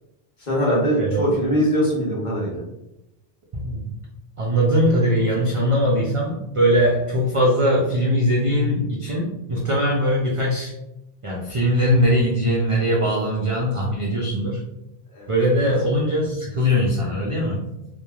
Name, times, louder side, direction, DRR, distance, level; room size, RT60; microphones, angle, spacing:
voice 1, 0.4-2.6 15.1-15.3, equal, 50° left, -5 dB, 1.0 m, -22 dB
voice 2, 1.0-1.3 3.5-4.0 4.4-10.7 11.2-14.6 15.3-17.7, equal, 55° right, -3 dB, 0.3 m, -21 dB
2.9 x 2.1 x 2.3 m, 0.90 s
omnidirectional pair, 1.1 m